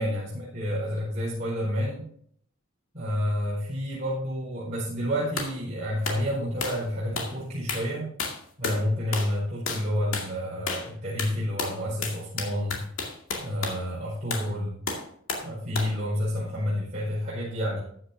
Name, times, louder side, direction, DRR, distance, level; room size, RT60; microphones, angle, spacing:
voice 1, 0.0-2.1 2.9-8.1 8.6-12.8 13.4-14.8 15.4-17.8, equal, 35° right, -9 dB, 4.7 m, -29 dB
sound 1, 5.4-5.6 6.0-6.2 6.6-6.8 7.2-7.4 7.7-7.9 8.2-8.8 9.1-9.4 9.7-9.9 10.1-10.3 10.7-10.9 11.2-13.8 14.3-14.5 14.9-15.5 15.8-16.0, left 4 dB, 90° left, 2.2 m, -32 dB
14.0 x 9.5 x 2.8 m, 0.63 s
head